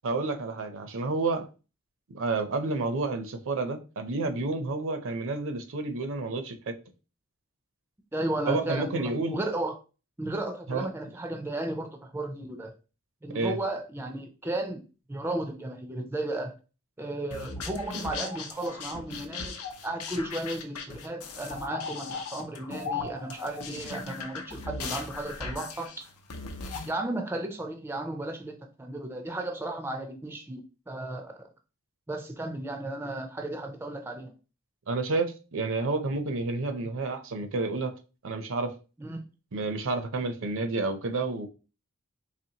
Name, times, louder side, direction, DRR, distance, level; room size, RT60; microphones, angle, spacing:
voice 1, 0.0-1.5 2.1-6.7 8.5-9.4 10.7-10.9 13.3-13.6 34.9-37.9 38.2-38.7 39.5-41.5, right 3 dB, 60° right, 0.6 m, -30 dB
voice 2, 8.1-9.7 10.2-12.7 13.2-14.8 15.1-16.5 17.0-25.9 26.9-30.6 30.9-31.5 32.1-34.3 39.0-39.2, right 1 dB, 10° right, 0.4 m, -34 dB
sound 1, 17.3-26.9, left 4 dB, 90° left, 0.7 m, -38 dB
4.2 x 3.0 x 2.8 m
head